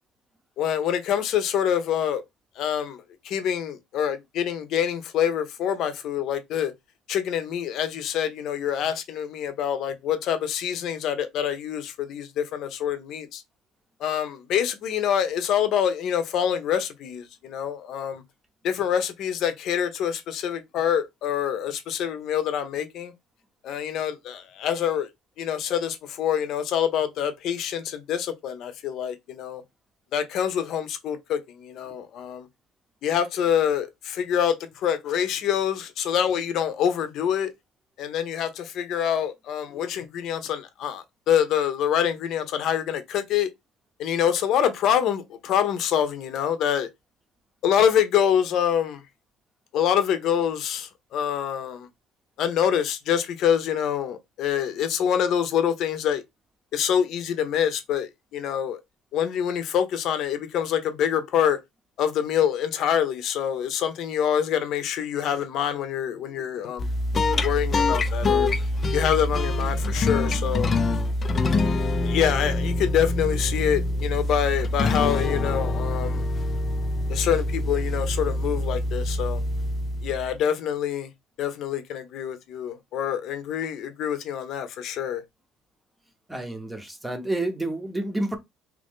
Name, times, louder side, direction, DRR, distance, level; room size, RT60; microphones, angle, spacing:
voice 1, 0.6-2.2 2.6-3.0 3.2-6.7 7.1-13.4 14.0-18.2 18.6-23.1 23.6-25.1 25.4-29.6 30.1-32.4 33.0-37.5 38.0-43.5 44.0-46.9 47.6-49.0 49.7-51.9 52.4-56.2 56.7-58.8 59.1-61.6 62.0-66.9 67.4-68.5 68.9-70.7 72.0-76.2 77.1-79.4 80.0-81.1 81.4-85.2, left 9 dB, 60° left, 0.7 m, -26 dB
sound 1, 66.8-80.4, left 2 dB, 30° left, 0.4 m, -25 dB
voice 2, 86.3-88.4, right 2 dB, 10° right, 0.8 m, -29 dB
3.0 x 2.6 x 3.6 m
cardioid pair, 120°, 0 cm